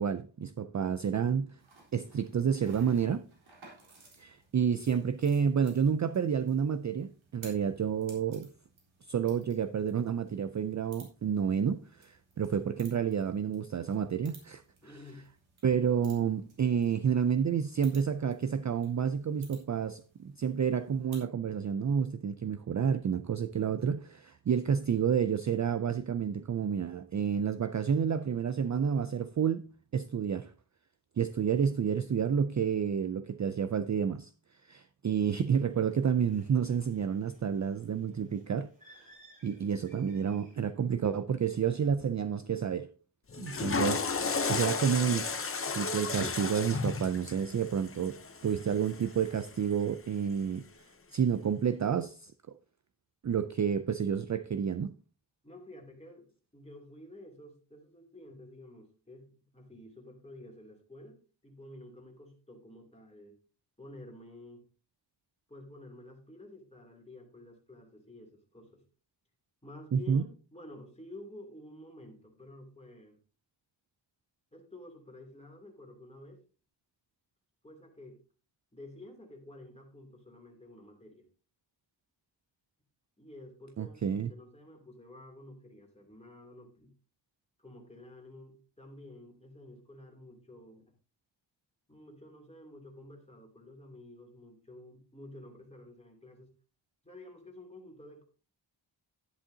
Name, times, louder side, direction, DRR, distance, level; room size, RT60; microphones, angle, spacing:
voice 1, 0.0-1.6 1.9-3.2 4.2-8.5 9.1-14.6 15.6-30.5 31.2-34.3 34.7-38.7 39.4-42.9 43.4-45.3 45.7-50.6 51.1-52.6 53.2-54.9 69.9-70.2 83.8-84.3, right 7 dB, 40° right, 0.4 m, -30 dB
sound 1, 1.6-21.3, right 3 dB, 90° right, 3.9 m, -58 dB
voice 2, 14.8-15.2 55.4-63.4 63.8-64.6 65.5-68.8 69.6-73.2 74.5-76.4 77.6-78.2 78.7-81.3 83.2-86.9 87.6-90.9 91.9-96.5 97.0-98.2, left 1 dB, 15° left, 2.9 m, -51 dB
Bird, 35.7-40.7, equal, 15° right, 6.4 m, -61 dB
Water / Toilet flush, 43.3-49.5, left 4 dB, 30° left, 0.6 m, -34 dB
11.0 x 10.0 x 2.8 m
wide cardioid pair, 125°, 46 cm